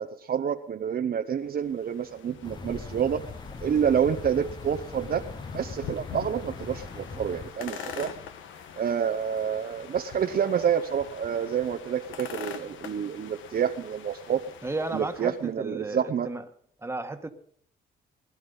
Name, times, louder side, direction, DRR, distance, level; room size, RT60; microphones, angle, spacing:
voice 1, 0.0-3.2 3.6-5.3 5.5-8.1 8.8-14.4 14.9-16.3, right 8 dB, 50° right, 7 dB, 0.9 m, -28 dB
sound 1, 1.4-15.5, left 8 dB, 80° left, 1.5 m, -43 dB
sound 2, 2.4-7.5, left 3 dB, 20° left, 0.9 m, -41 dB
voice 2, 14.6-16.4 16.8-17.3, right 2 dB, 15° right, 6 dB, 1.7 m, -33 dB
20.0 x 11.0 x 5.5 m, 0.62 s
cardioid pair, 90°, 20 cm